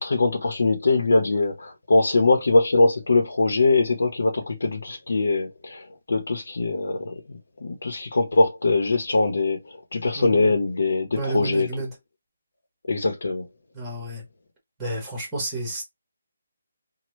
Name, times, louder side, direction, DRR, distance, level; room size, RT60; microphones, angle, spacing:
voice 1, 0.0-7.1 7.6-9.6 9.9-11.7 12.9-13.5, left 3 dB, 65° left, 1.0 m, -22 dB
voice 2, 10.1-10.6 11.1-12.0 13.7-14.2 14.8-15.8, right 2 dB, 5° right, 1.1 m, -30 dB
2.9 x 2.2 x 3.2 m
hypercardioid pair, 180°, 0 cm